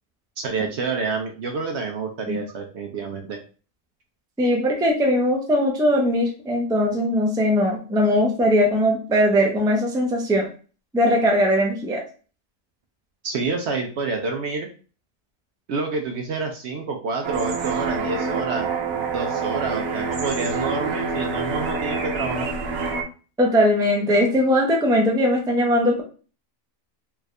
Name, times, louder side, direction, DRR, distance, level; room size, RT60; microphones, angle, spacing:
voice 1, 0.4-3.4 13.2-14.7 15.7-18.7 19.1-22.5, right 4 dB, 65° right, 3 dB, 0.8 m, -28 dB
voice 2, 4.4-10.5 10.9-12.0 23.4-26.0, equal, 5° right, 0 dB, 0.4 m, -20 dB
sound 1, 17.2-23.0, right 4 dB, 85° right, 1.2 m, -26 dB
3.5 x 2.4 x 3.2 m, 0.37 s
omnidirectional pair, 1.4 m